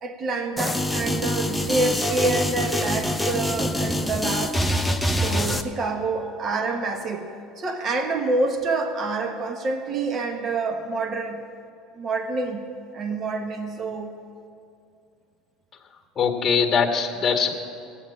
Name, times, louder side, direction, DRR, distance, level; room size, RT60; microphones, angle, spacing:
voice 1, 0.0-4.6 5.2-7.3 7.6-11.4 12.0-12.6 12.9-14.1, right 3 dB, 40° right, 5 dB, 1.3 m, -27 dB
sound 1, 0.6-5.6, left 1 dB, ahead, 0.8 m, -25 dB
voice 2, 16.2-17.5, left 6 dB, 25° left, 2 dB, 2.1 m, -21 dB
14.5 x 9.0 x 8.8 m, 2.5 s
supercardioid pair, 105°, 0 cm